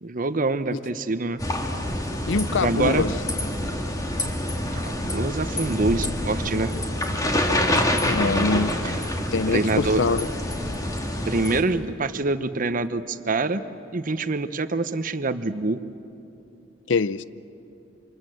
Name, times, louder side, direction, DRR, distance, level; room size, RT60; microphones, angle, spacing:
voice 1, 0.0-1.4 2.6-3.0 4.7-6.7 9.5-10.0 11.3-13.6 13.9-15.8, right 3 dB, 45° right, 11 dB, 0.9 m, -25 dB
sound 1, 1.4-11.6, left 1 dB, 20° left, 2.0 m, -26 dB
voice 2, 2.3-3.1 8.0-8.7 9.3-10.3 16.9-17.2, left 4 dB, 85° left, 16 dB, 0.6 m, -24 dB
27.5 x 26.0 x 7.9 m, 2.7 s
head